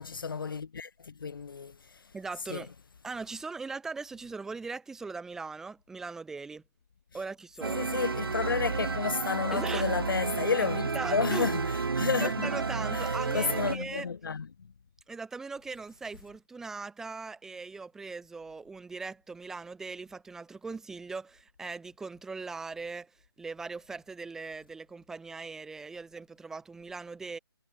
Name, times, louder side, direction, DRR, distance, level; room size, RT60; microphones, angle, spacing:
voice 1, 0.0-2.0 2.5-2.6 7.6-12.5 12.9-14.5, left 5 dB, 65° left, 0.6 m, -31 dB
voice 2, 2.1-2.7 3.0-6.6 7.1-7.9 9.5-9.9 10.9-11.5 12.2-14.1 15.1-27.4, right 4 dB, 5° right, 3.3 m, -40 dB
sound 1, 7.6-13.7, right 4 dB, 70° right, 3.0 m, -31 dB
figure-of-eight pair, 160°, 13 cm